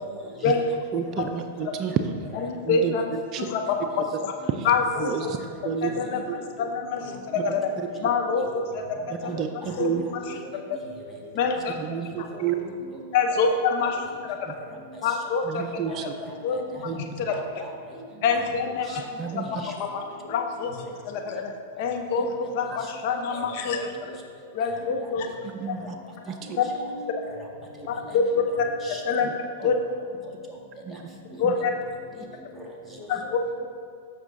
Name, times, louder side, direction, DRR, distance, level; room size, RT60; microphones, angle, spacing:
voice 1, 0.9-1.9 2.7-2.9 3.3-3.5 4.5-4.7 5.0-5.4 5.6-5.9 6.3-6.4 9.3-10.0 11.8-12.6 14.5-14.6 15.4-16.1 16.8-17.2 19.2-19.5 25.4-25.9 26.3-26.4 29.2-29.3 29.6-29.7 30.8-31.0 31.4-31.5, right 8 dB, 40° right, 7 dB, 0.5 m, -30 dB
voice 2, 2.4-3.1 3.4-4.3 4.6-5.3 5.8-7.7 8.0-9.4 9.8-10.8 11.3-11.7 13.1-14.0 14.2-14.4 15.0-15.6 16.0-16.1 16.4-17.6 18.2-19.0 19.8-20.0 20.3-20.7 21.0-23.8 24.5-25.3 26.5-26.6 27.9-28.7 29.0-29.3 29.6-29.7 31.4-31.7 33.1-33.4, left 5 dB, 55° left, 4 dB, 0.8 m, -26 dB
voice 3, 7.1-8.1 8.3-8.4 9.8-10.8 11.1-11.2 12.3-13.0 13.4-13.6 14.6-14.7 15.1-15.2 16.2-17.7 18.3-18.4 18.8-19.0 19.4-19.7 20.3-20.4 22.5-23.8 25.0-25.1 25.8-25.9 26.4-27.4 27.9-28.5 28.8-29.0 29.6-29.7 31.3-31.7 32.6-33.4, equal, 5° left, -3 dB, 1.9 m, -42 dB
14.0 x 5.9 x 2.7 m, 2.2 s
hypercardioid pair, 100°, 0 cm